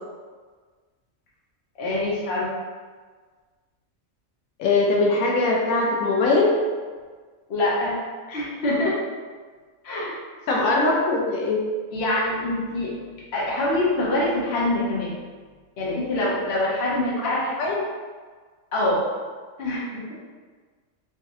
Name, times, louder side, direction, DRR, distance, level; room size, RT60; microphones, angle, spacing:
voice 1, 1.8-2.5 7.5-7.9 8.3-9.0 9.8-10.2 11.9-12.9 13.3-15.2 15.8-17.5 18.7-19.0 19.6-20.0, left 1 dB, 50° left, -6 dB, 1.1 m, -24 dB
voice 2, 4.6-6.5 10.5-11.6 17.2-17.3 17.6-17.8, left 3 dB, 85° left, -2 dB, 1.0 m, -21 dB
3.9 x 2.9 x 2.6 m, 1.5 s
omnidirectional pair, 1.4 m